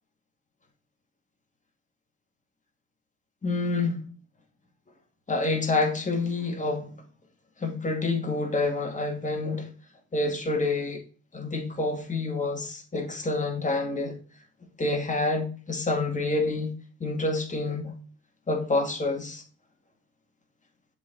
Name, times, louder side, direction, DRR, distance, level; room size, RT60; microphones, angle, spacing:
voice 1, 3.4-4.0 5.3-6.9 7.6-9.7 10.1-11.0 11.3-14.2 14.8-16.7 17.0-17.9 18.5-19.4, left 2 dB, 25° left, 2.2 m, -27 dB
7.2 x 4.2 x 4.1 m
cardioid pair, 90°, 30 cm